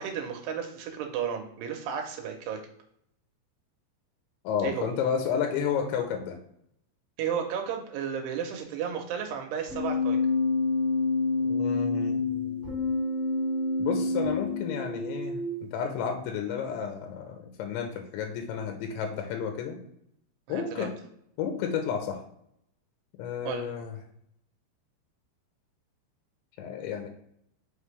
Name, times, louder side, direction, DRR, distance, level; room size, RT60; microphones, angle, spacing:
voice 1, 0.0-2.6 4.6-4.9 7.2-10.2 20.5-20.9 23.4-23.7, right 7 dB, 75° right, 3 dB, 2.6 m, -33 dB
voice 2, 4.4-6.4 11.5-12.7 13.8-19.8 20.5-20.9 21.4-22.2 23.2-23.9 26.6-27.1, left 7 dB, 80° left, 4 dB, 2.9 m, -31 dB
Keyboard (musical), 9.7-15.6, left 3 dB, 45° right, 0.9 m, -28 dB
6.0 x 5.4 x 3.3 m, 0.73 s
omnidirectional pair, 5.4 m